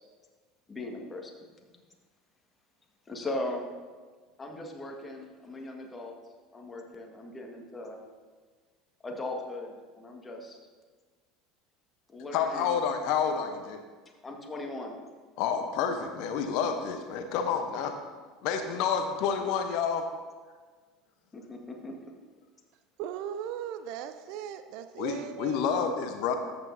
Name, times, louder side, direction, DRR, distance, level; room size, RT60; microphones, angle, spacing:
voice 1, 0.7-1.5 3.1-3.7 4.4-6.1 6.5-8.0 9.0-10.6 12.1-12.8 14.2-15.0 21.3-21.9, left 2 dB, 20° left, 2 dB, 1.7 m, -38 dB
voice 2, 12.3-13.8 15.4-18.0 18.4-20.1 25.0-26.4, left 7 dB, 60° left, 6 dB, 0.9 m, -29 dB
voice 3, 23.0-25.7, right 9 dB, 60° right, 10 dB, 0.5 m, -38 dB
13.5 x 8.0 x 2.7 m, 1.4 s
figure-of-eight pair, 70°, 0 cm